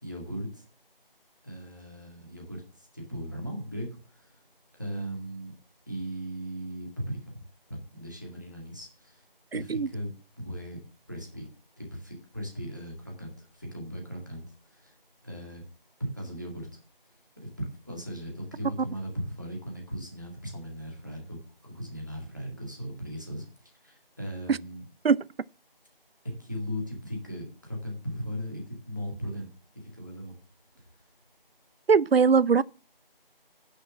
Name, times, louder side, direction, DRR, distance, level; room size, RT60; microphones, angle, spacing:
voice 1, 0.0-0.6 1.4-4.4 4.7-5.5 5.9-9.3 9.5-10.1 10.4-10.8 11.1-11.5 11.8-15.0 15.2-15.6 16.0-16.7 17.1-24.9 26.2-30.4, equal, 20° right, 2.0 m, -38 dB
voice 2, 9.5-9.9 25.0-25.2 31.9-32.6, right 5 dB, 90° right, 0.5 m, -20 dB
10.5 x 6.5 x 7.2 m
figure-of-eight pair, 175°, 29 cm